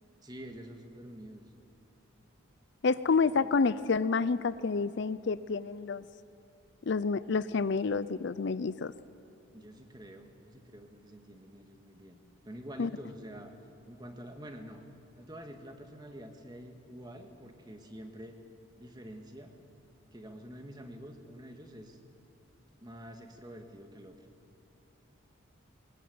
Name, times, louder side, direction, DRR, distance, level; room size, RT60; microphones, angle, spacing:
voice 1, 0.2-1.4 3.3-3.5 9.5-12.2 12.4-13.5 13.9-14.8 15.2-18.3 18.8-19.5 20.1-22.0 22.8-24.2, equal, 20° right, 5 dB, 1.8 m, -47 dB
voice 2, 2.8-6.0 6.9-8.9 12.8-12.9, left 4 dB, 55° left, 16 dB, 0.5 m, -29 dB
21.5 x 20.5 x 9.5 m, 2.6 s
head